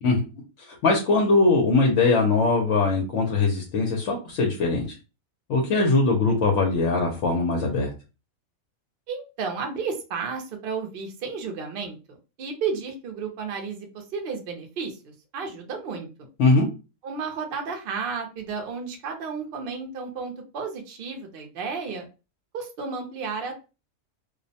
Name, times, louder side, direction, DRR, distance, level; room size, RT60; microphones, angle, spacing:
voice 1, 0.7-5.0 5.5-7.9 16.4-16.7, left 3 dB, 70° left, 0 dB, 0.8 m, -21 dB
voice 2, 9.1-16.1 17.0-22.1 22.5-23.5, right 5 dB, 55° right, 3 dB, 0.7 m, -32 dB
2.4 x 2.0 x 2.7 m, 0.31 s
omnidirectional pair, 1.4 m